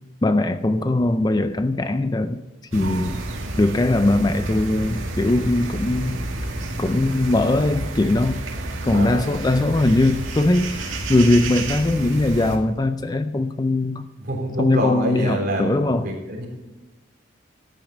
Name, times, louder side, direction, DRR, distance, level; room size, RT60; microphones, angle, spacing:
voice 1, 0.2-2.4 2.7-3.2 3.6-6.2 6.8-8.4 8.8-14.0 14.6-16.1, left 2 dB, 20° left, 11 dB, 0.4 m, -20 dB
sound 1, 2.7-12.6, right 2 dB, 85° right, 2.0 m, -30 dB
voice 2, 8.9-9.4 14.2-16.5, right 1 dB, 50° right, -1 dB, 3.6 m, -26 dB
13.5 x 9.1 x 5.3 m, 1.1 s
head